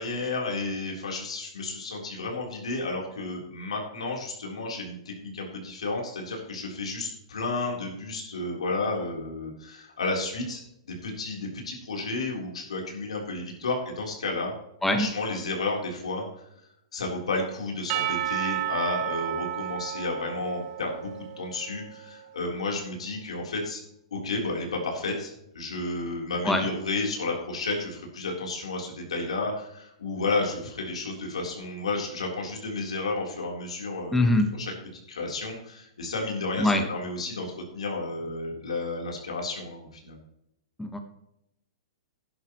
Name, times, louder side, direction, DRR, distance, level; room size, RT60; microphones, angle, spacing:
voice 1, 0.0-14.5 14.9-16.3 16.9-21.1 21.4-23.8 24.1-34.7 35.1-40.2, left 3 dB, 90° left, 0 dB, 3.7 m, -32 dB
Percussion / Church bell, 17.9-22.2, right 12 dB, 45° right, 0.8 m, -32 dB
voice 2, 34.1-34.5 36.6-36.8 40.8-41.0, left 1 dB, 5° left, 5 dB, 1.2 m, -22 dB
12.5 x 10.5 x 3.1 m, 0.80 s
hypercardioid pair, 135°, 3 cm